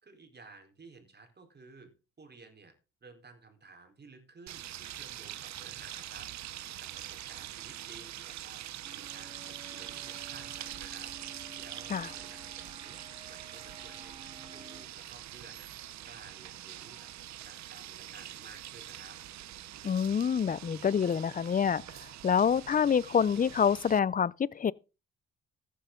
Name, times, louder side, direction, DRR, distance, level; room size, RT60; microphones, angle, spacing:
voice 1, 0.0-2.7 3.0-6.3 6.6-11.1 11.4-17.1 17.4-19.2, right 4 dB, 35° right, 4.0 m, -55 dB
sound 1, 4.5-24.0, right 13 dB, 65° right, 0.8 m, -44 dB
sound 2, 8.8-14.9, right 2 dB, 15° right, 0.9 m, -52 dB
voice 2, 19.8-21.8 22.2-24.7, left 7 dB, 30° left, 0.5 m, -26 dB
14.5 x 10.0 x 3.8 m
cardioid pair, 90°, 30 cm